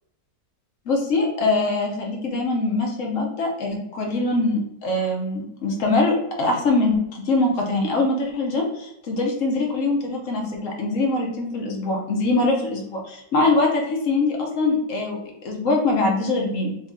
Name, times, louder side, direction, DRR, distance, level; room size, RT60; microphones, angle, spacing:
voice 1, 0.9-15.2 15.4-16.7, left 2 dB, 60° left, 0 dB, 1.1 m, -23 dB
3.1 x 3.0 x 3.6 m, 0.80 s
omnidirectional pair, 1.7 m